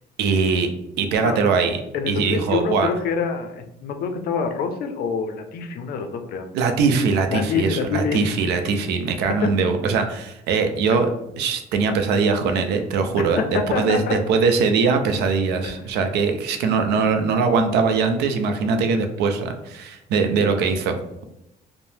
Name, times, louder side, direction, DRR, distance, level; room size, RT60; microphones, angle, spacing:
voice 1, 0.2-0.7 1.0-1.8 2.1-2.9 6.5-11.1 11.4-13.4 13.8-20.9, right 5 dB, 80° right, 6 dB, 0.4 m, -21 dB
voice 2, 1.9-6.5 7.3-8.2 9.3-9.5 10.9-11.0 13.2-14.2 15.6-15.8, left 5 dB, 65° left, 6 dB, 0.4 m, -26 dB
2.7 x 2.0 x 3.2 m, 0.84 s
cardioid pair, 110°, 17 cm